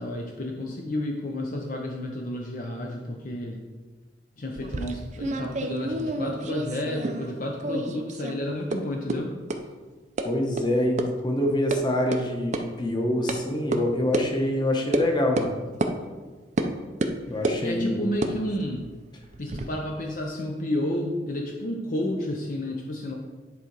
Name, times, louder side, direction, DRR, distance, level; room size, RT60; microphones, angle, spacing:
voice 1, 0.0-3.6 4.4-9.3 17.6-18.9 19.4-23.1, left 1 dB, 50° left, 1 dB, 0.7 m, -31 dB
sound 1, 4.5-7.4 7.6-8.4 8.7-8.8 9.1-9.2 9.5-9.6 10.2-10.3 10.6-10.7 11.0-11.1 11.4-11.8 12.1-12.2 12.5-12.6 13.3-13.4 13.7-13.8 14.1-14.3 14.9-15.1 15.4-15.5 15.8-15.9 16.6-16.7 17.0-17.6 18.1-19.7, right 2 dB, 40° right, 0.5 m, -29 dB
voice 2, 10.2-15.5 17.3-18.0, left 1 dB, 25° left, 1 dB, 1.1 m, -25 dB
10.0 x 3.8 x 4.6 m, 1.3 s
head